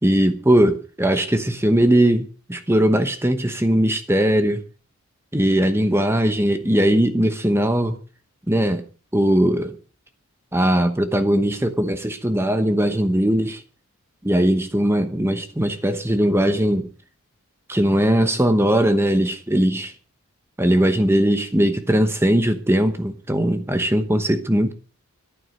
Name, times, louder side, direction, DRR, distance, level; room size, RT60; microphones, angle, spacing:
voice 1, 0.0-4.6 5.3-8.0 8.5-8.8 9.1-9.7 10.5-13.6 14.2-16.9 17.7-19.9 20.6-24.7, right 1 dB, 10° right, 1.0 m, -19 dB
13.5 x 11.0 x 6.4 m
head